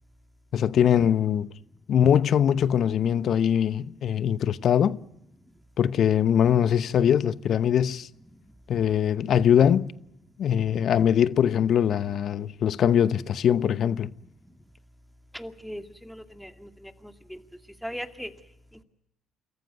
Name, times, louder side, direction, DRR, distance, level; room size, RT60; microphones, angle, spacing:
voice 1, 0.5-1.5 1.9-5.0 5.8-8.1 8.7-9.9 10.4-14.1, left 9 dB, 60° left, 0.8 m, -22 dB
voice 2, 15.3-16.7 17.3-17.4 17.8-18.3, equal, ahead, 2.3 m, -38 dB
28.5 x 14.5 x 9.4 m
hypercardioid pair, 55°, 0 cm